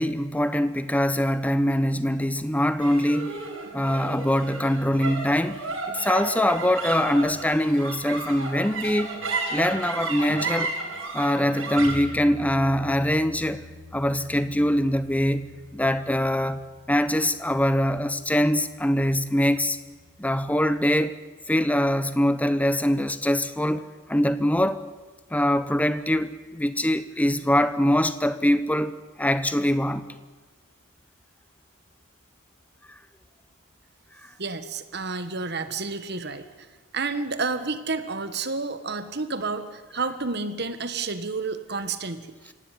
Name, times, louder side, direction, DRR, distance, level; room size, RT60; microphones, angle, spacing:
voice 1, 0.0-3.4 3.7-5.6 5.9-9.1 9.5-10.7 11.1-13.7 13.9-19.8 20.2-21.2 21.5-24.8 25.3-30.1, equal, 5° left, 0.9 m, -23 dB
sound 1, 2.8-19.4, right 3 dB, 65° right, 6.6 m, -35 dB
voice 2, 34.4-36.5 36.9-42.5, right 4 dB, 50° right, 1.6 m, -30 dB
24.5 x 17.5 x 9.4 m
head